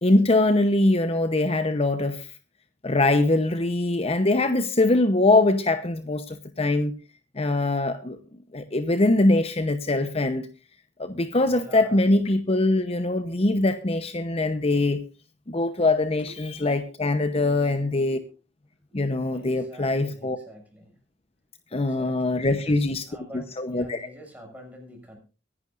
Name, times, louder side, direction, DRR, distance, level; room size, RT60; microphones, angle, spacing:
voice 1, 0.0-2.3 2.8-6.9 7.3-8.2 8.5-10.5 11.0-15.0 15.5-18.2 18.9-20.4 21.7-23.0 23.6-24.1, left 2 dB, 35° left, 0.8 m, -22 dB
voice 2, 11.4-12.2 16.2-16.3 17.2-17.7 18.1-18.2 19.3-21.0 21.7-25.2, equal, 10° right, 6.8 m, -47 dB
23.5 x 11.0 x 2.5 m
head